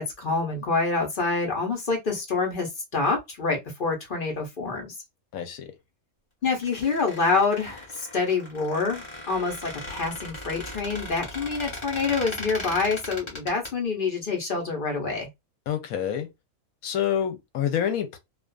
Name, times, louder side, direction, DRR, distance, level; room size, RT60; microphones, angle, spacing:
voice 1, 0.0-4.9 6.4-15.3, left 4 dB, 40° left, 1.0 m, -27 dB
voice 2, 5.3-5.7 15.7-16.3 16.8-18.2, left 9 dB, 80° left, 1.1 m, -27 dB
Squeak, 6.5-13.7, left 1 dB, 20° left, 1.1 m, -38 dB
2.4 x 2.4 x 2.2 m
omnidirectional pair, 1.5 m